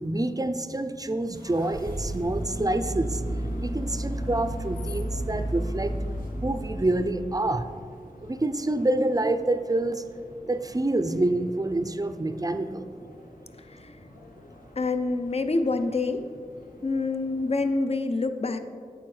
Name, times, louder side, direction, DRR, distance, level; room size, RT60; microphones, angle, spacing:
voice 1, 0.0-5.9 6.4-7.6 8.2-10.0 10.5-12.9, right 2 dB, 25° right, 9 dB, 0.4 m, -27 dB
sound 1, 1.3-7.2, right 1 dB, 90° left, 1.7 m, -32 dB
sound 2, 2.2-17.7, left 1 dB, 70° left, 1.1 m, -48 dB
voice 2, 14.8-16.2 16.8-18.6, left 3 dB, 45° left, 8 dB, 0.5 m, -26 dB
8.6 x 7.7 x 3.2 m, 2.2 s
wide cardioid pair, 60°, 15 cm